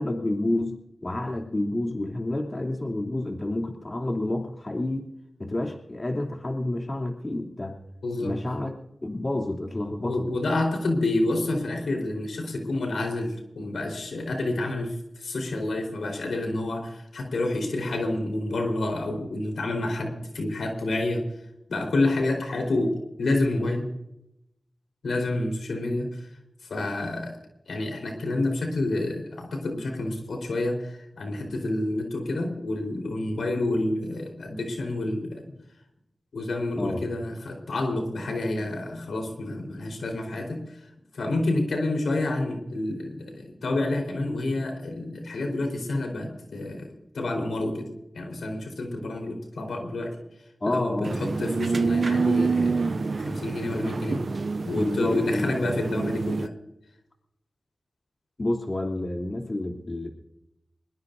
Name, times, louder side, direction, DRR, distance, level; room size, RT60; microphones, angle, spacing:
voice 1, 0.0-5.1 5.4-7.8 8.2-8.7 9.0-10.2 36.8-37.0 50.6-51.3 53.6-53.9 54.7-55.6 58.4-60.1, left 1 dB, 40° left, 1 dB, 3.0 m, -29 dB
voice 2, 8.0-8.3 10.0-21.2 21.7-23.9 25.0-26.3 26.6-27.4 27.7-35.4 36.3-40.8 41.1-47.9 48.1-50.1 50.6-54.2 54.6-56.5, left 2 dB, 90° left, 3 dB, 4.2 m, -28 dB
sound 1, 51.0-56.5, right 4 dB, 60° right, 0.5 m, -27 dB
23.5 x 21.0 x 2.7 m, 0.85 s
cardioid pair, 40°, 0 cm